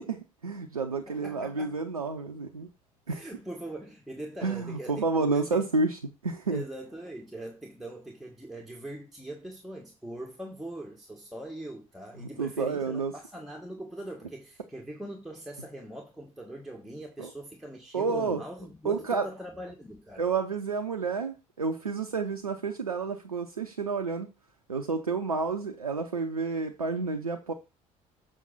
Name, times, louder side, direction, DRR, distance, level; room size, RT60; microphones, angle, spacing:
voice 1, 0.0-2.7 3.1-3.3 4.4-6.6 12.2-13.1 17.2-17.3 17.9-18.4 18.8-19.3 20.2-24.3 24.7-27.5, right 4 dB, 85° right, 0.6 m, -30 dB
voice 2, 1.1-1.8 3.1-5.7 6.5-20.3, right 1 dB, ahead, 1.6 m, -41 dB
7.4 x 5.2 x 4.0 m
figure-of-eight pair, 55°, 18 cm